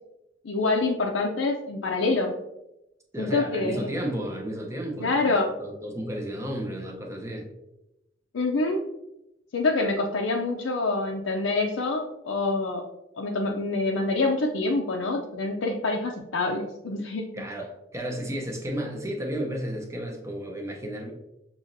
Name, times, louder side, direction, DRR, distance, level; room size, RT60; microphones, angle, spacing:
voice 1, 0.4-2.3 3.2-3.9 5.0-5.6 8.3-8.8 9.5-12.8 13.2-17.4, left 3 dB, 90° left, -1 dB, 0.5 m, -26 dB
voice 2, 3.1-7.5 17.3-21.1, right 1 dB, 15° right, 0 dB, 0.7 m, -33 dB
6.4 x 3.0 x 2.6 m, 0.93 s
head